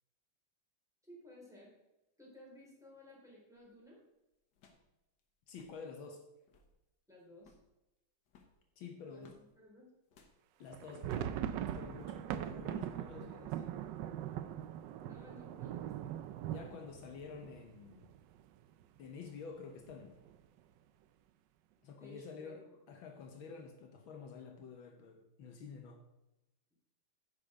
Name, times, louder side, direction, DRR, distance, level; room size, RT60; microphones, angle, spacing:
voice 1, 1.0-1.7 2.2-4.0 7.1-7.5 9.1-9.9 15.0-16.1 22.0-22.9, left 1 dB, ahead, -5 dB, 3.9 m, -57 dB
sound 1, 3.6-3.8 4.5-4.9 5.2-5.3 5.5-5.8 6.3-6.8 7.4-7.7 8.3-9.5 10.1-10.4 11.0-11.4 11.9-12.1, left 5 dB, 60° left, 1.6 m, -65 dB
voice 2, 5.5-6.3 8.8-9.4 10.6-13.8 16.5-18.1 19.0-20.2 21.8-26.0, left 5 dB, 75° left, 4 dB, 1.7 m, -49 dB
sound 2, 10.7-18.4 18.7-18.8 19.1-19.3 19.9-20.3, right 11 dB, 75° right, 1.1 m, -41 dB
10.0 x 6.6 x 5.1 m, 0.98 s
omnidirectional pair, 2.3 m